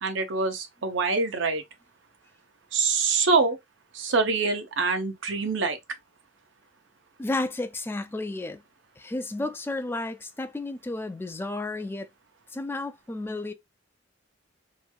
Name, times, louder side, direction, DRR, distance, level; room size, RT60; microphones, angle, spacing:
voice 1, 0.0-1.6 2.7-3.6 3.9-5.8, right 4 dB, 75° right, 0.7 m, -25 dB
voice 2, 7.2-8.6 9.0-12.1 12.5-13.5, left 2 dB, 10° left, 0.3 m, -32 dB
3.0 x 2.6 x 2.3 m
head